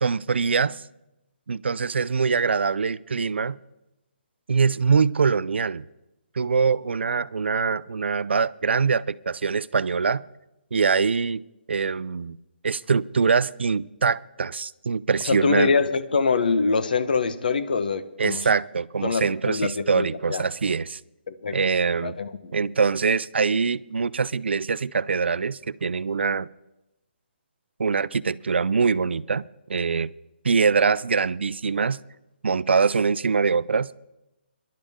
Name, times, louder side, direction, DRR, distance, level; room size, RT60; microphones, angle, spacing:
voice 1, 0.0-0.8 1.5-3.6 4.5-5.8 6.4-10.2 10.7-11.4 11.7-12.4 12.6-15.7 18.2-21.0 21.5-22.2 22.5-26.5 27.8-29.4 29.7-30.1 30.4-32.0 32.4-33.9, right 5 dB, 90° right, 0.5 m, -23 dB
voice 2, 15.2-18.5 19.0-20.4 21.3-21.6 22.0-22.5, left 4 dB, 50° left, 1.1 m, -24 dB
25.5 x 11.5 x 3.7 m
hypercardioid pair, 175°, 6 cm